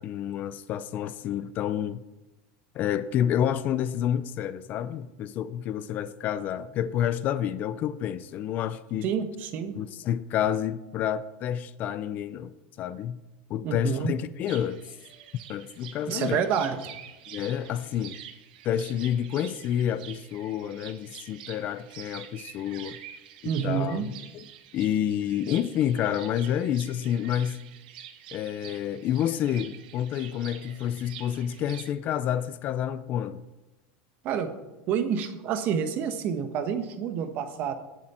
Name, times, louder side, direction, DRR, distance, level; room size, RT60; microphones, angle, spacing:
voice 1, 0.0-2.0 2.7-9.1 9.8-13.2 13.5-14.8 15.5-16.4 17.3-18.2 18.6-23.0 23.4-24.1 24.3-24.4 24.7-27.6 28.3-33.4, left 10 dB, 40° left, 0.5 m, -29 dB
voice 2, 9.0-9.8 13.6-14.1 16.1-16.8 23.4-24.1 34.2-34.5 34.9-37.7, right 7 dB, 45° right, 1.3 m, -28 dB
sound 1, 14.5-31.9, right 10 dB, 85° right, 1.3 m, -46 dB
18.5 x 7.5 x 4.4 m
supercardioid pair, 150°, 5 cm